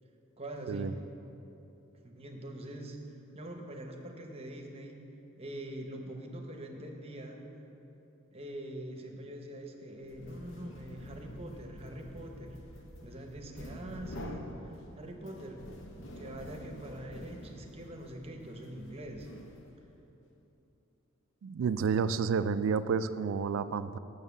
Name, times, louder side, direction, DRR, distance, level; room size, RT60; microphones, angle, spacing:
voice 1, 0.4-1.0 2.0-3.0 3.3-5.0 5.4-7.4 8.3-12.6 13.0-15.6 16.2-19.3, right 1 dB, 30° right, 2 dB, 0.8 m, -44 dB
sound 1, 10.0-19.9, left 1 dB, 65° left, 0.8 m, -47 dB
voice 2, 21.4-24.0, right 6 dB, 65° right, 14 dB, 0.3 m, -30 dB
7.3 x 6.4 x 6.9 m, 3.0 s
head